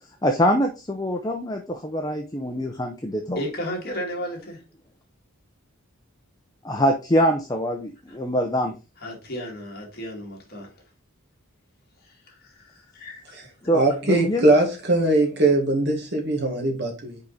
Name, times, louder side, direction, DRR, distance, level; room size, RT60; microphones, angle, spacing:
voice 1, 0.2-3.4 6.6-8.7 13.6-14.5, equal, 20° left, 0.7 m, -24 dB
voice 2, 3.3-4.6 8.1-8.2 9.0-10.7 12.0-13.4 13.6-13.7, equal, 45° left, 2.4 m, -34 dB
voice 3, 13.7-17.2, right 2 dB, 50° right, 2.1 m, -21 dB
5.5 x 5.2 x 4.1 m
head